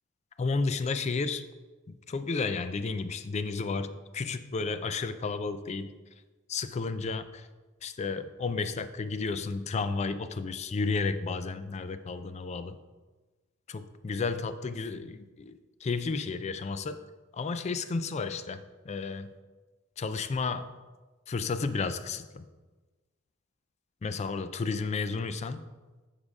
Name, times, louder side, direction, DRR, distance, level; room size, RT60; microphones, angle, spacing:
voice 1, 0.4-1.4 1.9-5.9 6.5-7.5 7.8-12.8 13.7-17.0 17.3-19.3 20.0-20.7 21.3-22.5 24.0-25.7, left 4 dB, 30° left, 11 dB, 0.3 m, -32 dB
7.3 x 4.9 x 4.8 m, 1.3 s
head